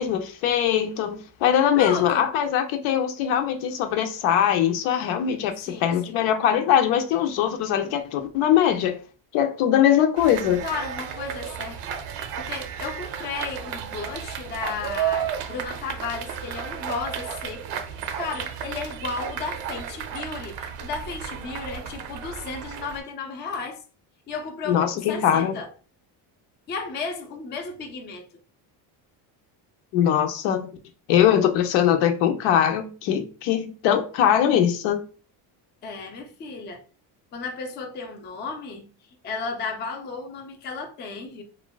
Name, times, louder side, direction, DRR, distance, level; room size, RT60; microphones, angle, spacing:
voice 1, 0.0-9.0 9.3-10.6 24.7-25.5 29.9-30.7 31.1-35.0, left 10 dB, 80° left, 0.6 m, -21 dB
voice 2, 1.8-2.3 5.7-6.2 10.6-23.8 24.3-25.7 26.7-28.3 35.8-36.8 37.3-38.9 39.2-41.4, left 4 dB, 25° left, 0.3 m, -34 dB
sound 1, 10.2-23.0, right 8 dB, 85° right, 0.6 m, -33 dB
3.0 x 2.1 x 2.2 m
cardioid pair, 130°, 48 cm